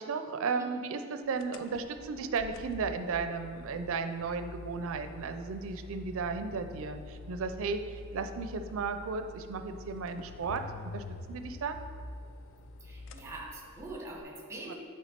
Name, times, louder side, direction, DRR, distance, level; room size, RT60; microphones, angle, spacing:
voice 1, 0.0-10.6 10.9-11.8 14.7-14.8, right 4 dB, 65° right, 8 dB, 0.4 m, -35 dB
sound 1, 1.4-14.2, left 2 dB, 60° left, 0.4 m, -46 dB
voice 2, 12.8-14.7, right 2 dB, 15° right, -1 dB, 0.9 m, -43 dB
8.2 x 3.4 x 4.3 m, 2.1 s
head